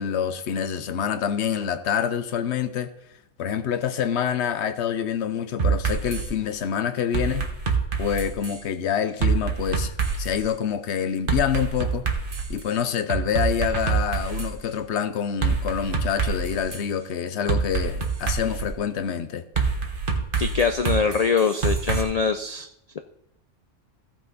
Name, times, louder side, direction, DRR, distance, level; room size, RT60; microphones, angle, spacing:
voice 1, 0.0-2.9 3.4-7.5 8.0-12.1 12.5-19.4, left 8 dB, 65° left, 0.9 m, -26 dB
sound 1, 5.6-6.3 7.1-8.6 9.2-10.4 11.3-12.6 13.1-14.5 15.4-16.8 17.5-18.7 19.6-22.0, right 5 dB, 45° right, 1.4 m, -25 dB
voice 2, 20.4-22.7, left 5 dB, 90° left, 0.3 m, -23 dB
15.5 x 5.9 x 4.0 m
omnidirectional pair, 1.3 m